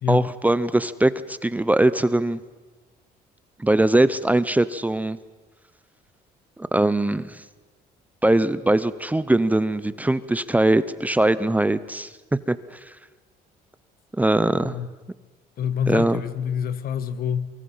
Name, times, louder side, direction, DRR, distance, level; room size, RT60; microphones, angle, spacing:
voice 1, 0.1-2.4 3.6-5.2 6.6-7.4 8.2-12.9 14.2-14.8 15.9-16.2, right 1 dB, 10° right, 15 dB, 0.7 m, -21 dB
voice 2, 15.6-17.5, left 8 dB, 60° left, 13 dB, 1.5 m, -26 dB
24.0 x 23.5 x 5.7 m, 1.3 s
cardioid pair, 110°, 17 cm